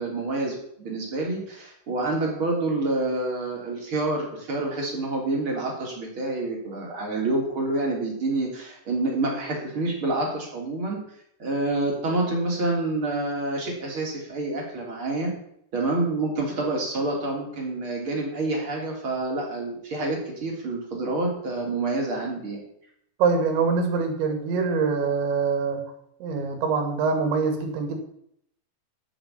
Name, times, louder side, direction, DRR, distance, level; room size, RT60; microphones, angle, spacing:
voice 1, 0.0-11.0 11.4-15.3 15.7-22.6, right 2 dB, 30° right, -1 dB, 3.4 m, -27 dB
voice 2, 23.2-25.8 26.2-28.0, right 5 dB, 75° right, 4 dB, 4.4 m, -24 dB
8.6 x 8.5 x 8.4 m, 0.71 s
omnidirectional pair, 5.3 m